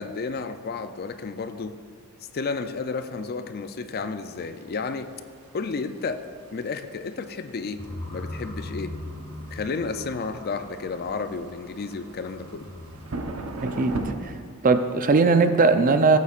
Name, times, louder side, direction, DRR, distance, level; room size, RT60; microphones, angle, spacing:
voice 1, 0.0-1.7 2.3-5.1 5.5-6.2 6.5-7.8 8.1-8.9 9.5-12.7, left 4 dB, 45° left, 9 dB, 0.4 m, -32 dB
sound 1, 4.3-14.1, right 2 dB, 75° right, 0.9 m, -39 dB
sound 2, 7.8-13.5, left 1 dB, 25° left, 1.5 m, -40 dB
voice 2, 13.6-13.9 14.2-14.3 14.6-16.2, right 4 dB, 40° right, 9 dB, 0.5 m, -19 dB
14.5 x 8.4 x 2.4 m, 2.5 s
head